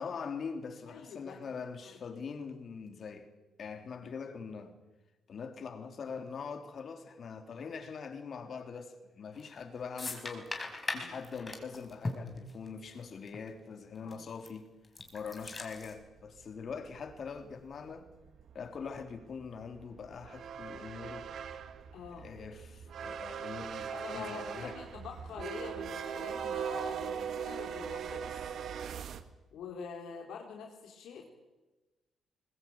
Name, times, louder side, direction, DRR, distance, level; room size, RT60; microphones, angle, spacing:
voice 1, 0.0-3.3 3.6-4.8 5.3-14.7 15.1-18.1 18.5-21.3 22.1-24.8, left 5 dB, 50° left, 3.3 m, -43 dB
voice 2, 0.9-1.4 1.8-2.2 11.0-11.2 14.0-14.2 21.9-22.3 23.9-28.3 29.5-31.3, left 6 dB, 80° left, 3.7 m, -45 dB
sound 1, 9.4-9.6 10.0-13.0 13.3-13.4 14.1-14.5 14.8-15.9, left 2 dB, 25° left, 4.5 m, -39 dB
sound 2, 15.3-15.5 16.1-16.2 16.4-16.5 16.7-29.2, right 7 dB, 65° right, 1.7 m, -40 dB
21.0 x 20.5 x 8.8 m
cardioid pair, 90°, 0 cm